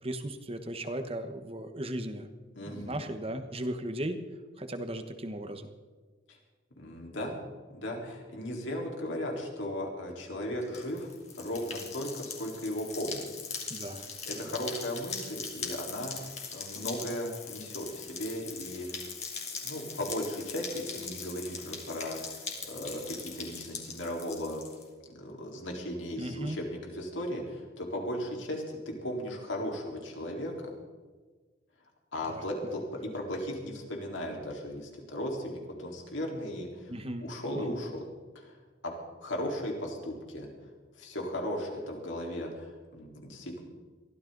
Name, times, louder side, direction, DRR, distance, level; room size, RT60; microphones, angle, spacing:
voice 1, 0.0-2.3 2.6-4.2 4.6-5.7 13.7-14.6 26.2-26.6 32.3-32.8 36.9-37.3 37.7-37.8, right 1 dB, 30° right, 8 dB, 1.2 m, -37 dB
voice 2, 2.5-3.0 6.3-6.4 6.8-7.4 7.7-11.1 11.4-13.3 14.3-16.2 16.5-18.9 19.6-24.6 25.1-30.7 32.1-32.8 33.1-36.9 37.2-38.1 38.3-38.6 38.8-38.9 39.2-40.5 41.0-43.6, left 1 dB, 85° left, 0 dB, 4.1 m, -36 dB
sound 1, 10.6-24.8, left 5 dB, 35° left, 2.9 m, -41 dB
23.0 x 15.5 x 4.0 m, 1.4 s
head